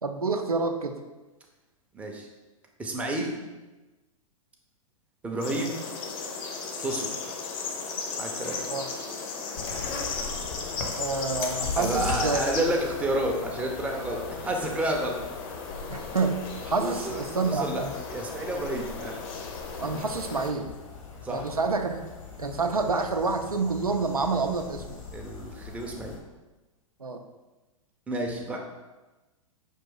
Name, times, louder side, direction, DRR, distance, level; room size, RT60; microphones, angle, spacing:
voice 1, 0.0-1.0 8.7-8.9 11.0-12.4 15.9-16.4 16.7-17.9 19.8-20.7 21.3-22.0 22.4-25.0 27.0-27.2, right 4 dB, 90° right, 5 dB, 0.4 m, -28 dB
voice 2, 1.9-2.3 2.8-3.4 5.2-5.8 6.8-7.1 8.2-8.6 11.8-15.2 16.8-17.8 18.1-19.1 21.2-21.5 25.1-26.2 28.1-28.6, right 1 dB, 5° right, 0 dB, 0.5 m, -30 dB
sound 1, 5.4-20.5, left 4 dB, 40° left, 0.7 m, -36 dB
sound 2, 9.5-26.2, left 4 dB, 60° left, 1.0 m, -41 dB
5.2 x 2.6 x 3.7 m, 1.1 s
figure-of-eight pair, 105°, 18 cm